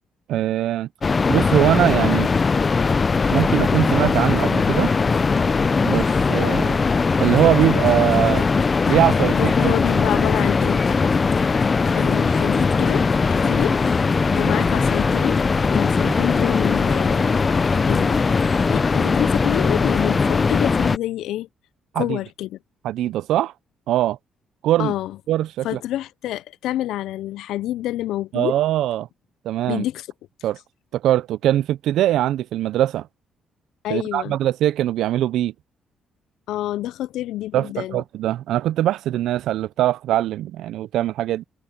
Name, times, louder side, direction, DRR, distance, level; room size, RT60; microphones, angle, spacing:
voice 1, 0.3-0.9 1.3-2.3 3.3-4.9 5.8-6.8 7.2-8.5 8.9-9.7 21.9-22.2 22.8-23.5 23.9-24.2 24.6-24.9 25.3-25.8 28.3-29.1 29.5-29.8 30.4-30.6 30.9-33.1 33.9-35.5 37.5-41.4, right 13 dB, 85° right, 0.4 m, -21 dB
sound 1, 1.0-21.0, left 4 dB, 35° left, 0.5 m, -20 dB
sound 2, 1.7-19.0, left 7 dB, 55° left, 1.3 m, -37 dB
voice 2, 9.3-10.8 11.5-13.1 13.3-13.8 14.4-15.4 15.7-17.5 17.9-21.5 22.0-22.6 24.8-25.2 25.6-28.6 29.6-30.1 33.8-34.4 36.5-38.0, left 14 dB, 85° left, 0.3 m, -28 dB
cardioid pair, 90°, 0 cm